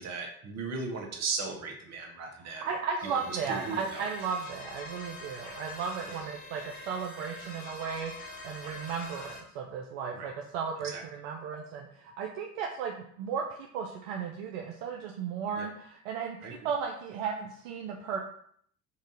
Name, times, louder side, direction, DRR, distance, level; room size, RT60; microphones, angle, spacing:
voice 1, 0.0-2.7 3.3-4.0 6.0-6.2 10.1-10.3 10.8-11.0 15.6-15.7 16.4-16.5, right 4 dB, 35° right, 2 dB, 0.8 m, -37 dB
voice 2, 2.6-18.2, right 6 dB, 65° right, 1 dB, 0.5 m, -35 dB
sound 1, 3.0-9.4, left 2 dB, 65° left, 1.2 m, -45 dB
4.0 x 2.4 x 2.6 m, 0.64 s
figure-of-eight pair, 60°, 44 cm